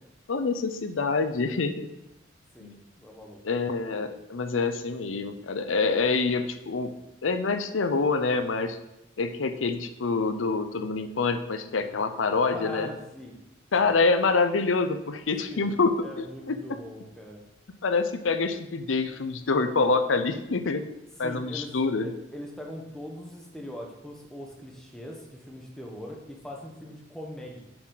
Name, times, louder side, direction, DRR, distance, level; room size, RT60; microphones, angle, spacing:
voice 1, 0.3-1.9 2.6-2.8 3.4-6.9 7.2-8.8 9.2-12.9 13.7-16.6 17.8-20.9 21.2-22.1, left 4 dB, 90° left, 9 dB, 0.6 m, -26 dB
voice 2, 2.5-3.4 12.3-13.4 13.8-13.9 15.5-15.7 16.0-17.4 21.2-21.7 22.0-27.6, left 1 dB, 5° left, -1 dB, 1.2 m, -41 dB
7.2 x 6.9 x 4.0 m, 0.88 s
head